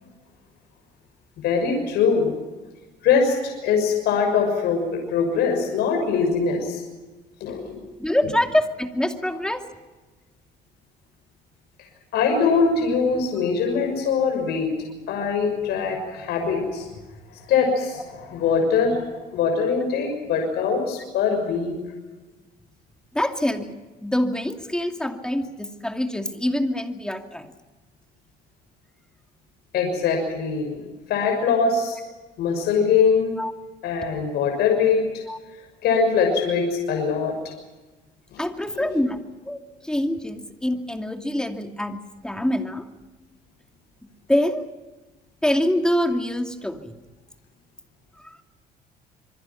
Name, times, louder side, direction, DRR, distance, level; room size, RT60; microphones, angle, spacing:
voice 1, 1.4-2.3 3.0-6.8 7.4-7.8 12.1-14.7 15.1-16.9 17.5-21.7 29.7-30.8 31.1-32.0 32.4-33.3 33.8-35.0 35.8-37.3 38.3-38.4 38.7-38.8, left 5 dB, 75° left, 3 dB, 6.4 m, -22 dB
voice 2, 8.0-9.6 23.1-23.8 24.0-27.5 33.4-33.5 35.3-35.4 38.4-39.2 39.5-39.6 39.8-42.9 44.0-44.7 45.4-46.9 48.2-48.4, left 1 dB, 5° left, 5 dB, 2.5 m, -25 dB
27.0 x 24.0 x 5.8 m, 1.2 s
cardioid pair, 110°, 17 cm